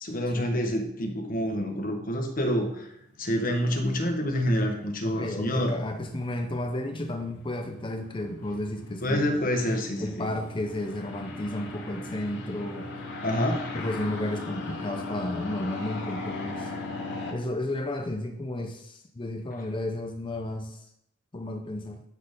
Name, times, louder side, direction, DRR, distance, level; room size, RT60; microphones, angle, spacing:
voice 1, 0.0-2.8 3.2-5.7 9.0-10.3 13.2-13.6, equal, 45° left, 3 dB, 1.3 m, -27 dB
sound 1, 2.7-17.3, left 3 dB, 60° left, 2.7 m, -39 dB
voice 2, 5.0-9.5 10.0-12.9 13.7-16.7 17.3-20.8 21.3-22.0, left 1 dB, 25° left, 5 dB, 0.6 m, -33 dB
11.5 x 4.4 x 5.2 m, 0.78 s
head